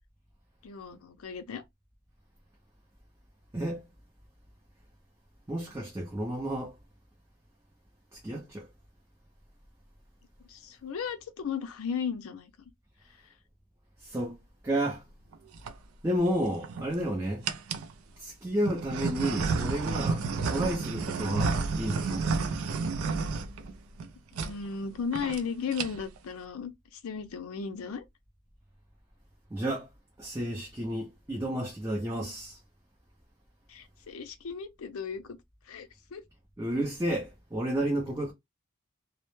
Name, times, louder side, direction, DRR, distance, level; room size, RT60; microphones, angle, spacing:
voice 1, 0.6-1.6 10.5-12.5 24.3-28.0 33.7-35.4 35.7-36.2, left 6 dB, 90° left, 0.5 m, -36 dB
voice 2, 3.5-3.8 5.5-6.7 8.2-8.7 14.0-14.4 14.6-15.0 16.0-17.4 18.2-22.3 29.5-29.9 30.2-32.6 36.6-38.3, right 1 dB, 15° right, 0.4 m, -31 dB
sound 1, 15.3-15.7 16.4-17.0 17.4-17.9 18.6-24.1 24.3-24.5 24.8-24.9 25.1-25.4 25.7-26.2, right 4 dB, 90° right, 0.4 m, -31 dB
2.1 x 2.0 x 3.0 m
head